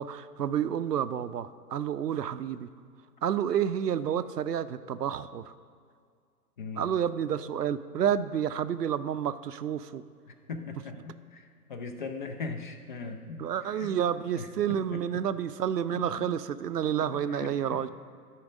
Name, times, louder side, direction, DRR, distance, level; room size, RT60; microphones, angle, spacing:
voice 1, 0.0-2.7 3.2-5.5 6.8-10.0 13.4-17.9, right 9 dB, 75° right, 14 dB, 0.6 m, -30 dB
voice 2, 6.6-6.9 10.3-13.9 14.4-15.2 15.9-16.3 17.1-17.8, left 4 dB, 30° left, 6 dB, 0.6 m, -40 dB
12.5 x 4.5 x 5.0 m, 2.1 s
figure-of-eight pair, 125°, 48 cm